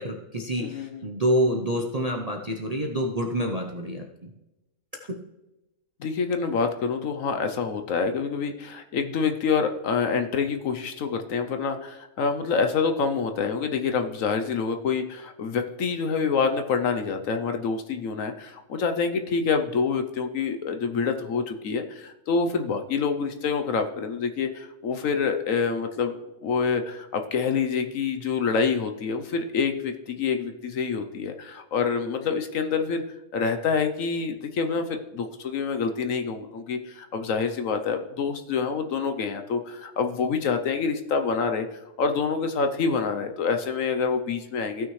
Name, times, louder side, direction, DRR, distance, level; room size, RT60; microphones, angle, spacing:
voice 1, 0.0-4.3 5.1-5.2, equal, 35° right, 1 dB, 0.6 m, -27 dB
voice 2, 0.6-1.0 6.0-26.2 26.4-33.0 33.3-41.7 42.0-44.9, left 5 dB, 60° left, 7 dB, 1.0 m, -27 dB
16.0 x 6.1 x 3.2 m, 0.97 s
omnidirectional pair, 1.7 m